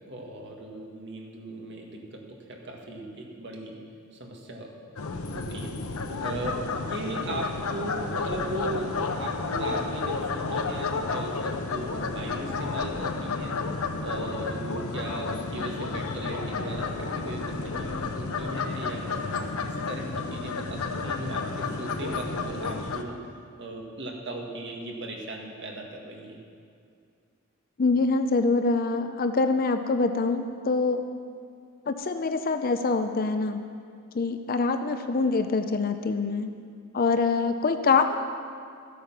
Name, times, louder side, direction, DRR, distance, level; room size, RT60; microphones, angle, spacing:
voice 1, 0.1-3.8 4.1-4.7 5.3-5.7 6.2-23.2 23.6-26.4, right 2 dB, 55° right, 0 dB, 1.7 m, -38 dB
sound 1, 5.0-23.0, left 4 dB, 90° left, 0.8 m, -31 dB
voice 2, 27.8-31.0 31.9-33.6 34.1-36.5 36.9-38.2, left 4 dB, 45° left, 8 dB, 0.5 m, -25 dB
14.0 x 8.5 x 5.9 m, 2.3 s
head